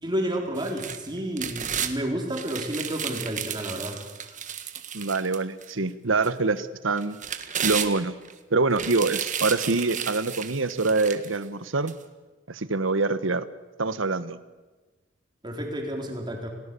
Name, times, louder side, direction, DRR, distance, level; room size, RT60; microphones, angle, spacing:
voice 1, 0.0-4.4 15.4-16.5, equal, 25° right, 1 dB, 3.9 m, -31 dB
sound 1, 0.6-1.9 2.3-5.7 6.2-6.3 7.0-8.3 8.7-11.4 11.9-12.0, right 8 dB, 40° right, 1.6 m, -33 dB
voice 2, 4.9-7.2 7.6-8.1 8.5-11.9 12.5-13.4 13.8-14.4, right 3 dB, 85° right, 14 dB, 1.2 m, -25 dB
29.0 x 18.0 x 6.9 m, 1.2 s
head